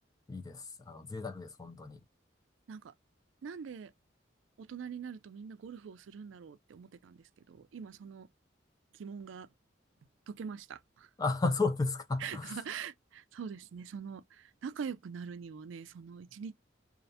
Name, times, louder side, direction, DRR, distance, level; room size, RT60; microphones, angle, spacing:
voice 1, 0.3-2.0 11.2-12.6, left 3 dB, 20° left, 0.4 m, -33 dB
voice 2, 3.4-3.9 4.6-8.3 8.9-9.5 10.3-11.1 12.2-16.5, right 6 dB, 85° right, 0.4 m, -43 dB
2.4 x 2.1 x 2.6 m
head